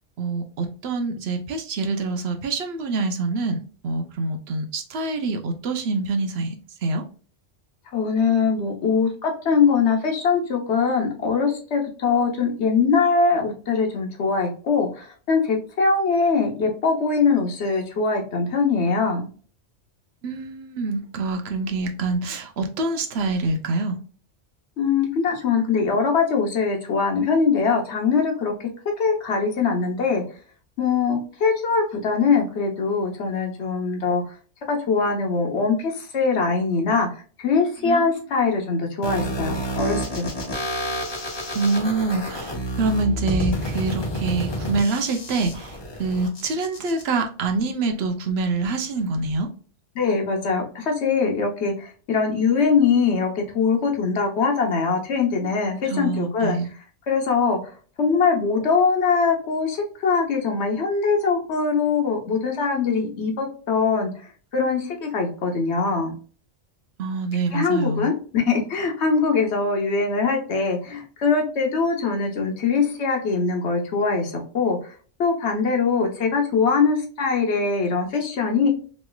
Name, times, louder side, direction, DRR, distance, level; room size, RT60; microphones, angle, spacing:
voice 1, 0.2-7.0 20.2-23.9 37.8-38.2 41.5-49.5 55.8-56.7 67.0-68.1, right 3 dB, 65° right, 5 dB, 0.8 m, -26 dB
voice 2, 7.9-19.3 24.8-28.5 29.0-30.2 30.8-34.2 34.7-37.1 37.4-40.3 49.9-56.6 57.1-57.6 58.0-64.3 64.5-66.1 67.5-74.9 75.2-78.7, left 5 dB, 70° left, 2 dB, 1.2 m, -22 dB
sound 1, 39.0-47.0, equal, 30° left, 0.6 m, -29 dB
3.1 x 3.0 x 2.2 m, 0.40 s
omnidirectional pair, 1.2 m